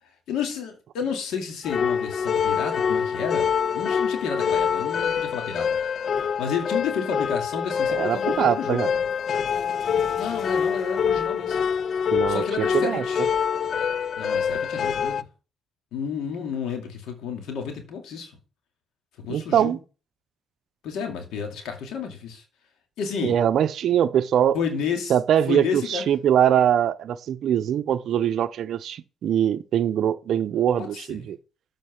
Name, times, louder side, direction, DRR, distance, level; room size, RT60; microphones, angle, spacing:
voice 1, 0.0-5.8 6.4-8.9 10.2-11.6 12.3-13.3 14.2-15.3 15.9-18.3 19.3-19.8 20.8-22.4 23.0-23.3 24.5-25.1 25.5-26.1 30.8-31.3, left 6 dB, 85° left, 2.3 m, -31 dB
sound 1, 1.6-15.2, left 7 dB, 55° left, 0.3 m, -25 dB
voice 2, 7.9-8.9 12.1-13.0 19.3-19.8 23.2-24.6 25.1-31.4, right 9 dB, 70° right, 0.6 m, -22 dB
7.7 x 5.1 x 5.7 m
cardioid pair, 90°, 0 cm